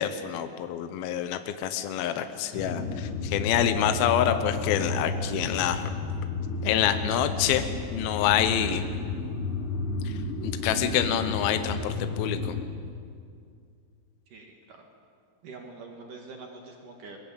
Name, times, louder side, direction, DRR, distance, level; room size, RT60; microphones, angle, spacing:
voice 1, 0.0-5.9 6.6-7.6 7.9-8.8 10.0-12.5, left 10 dB, 75° left, 8 dB, 2.8 m, -27 dB
sound 1, 2.5-12.7, left 3 dB, 45° left, 2.2 m, -32 dB
voice 2, 14.3-14.8 15.4-17.2, right 3 dB, 60° right, 2 dB, 3.3 m, -45 dB
23.5 x 21.5 x 8.7 m, 2.3 s
omnidirectional pair, 4.5 m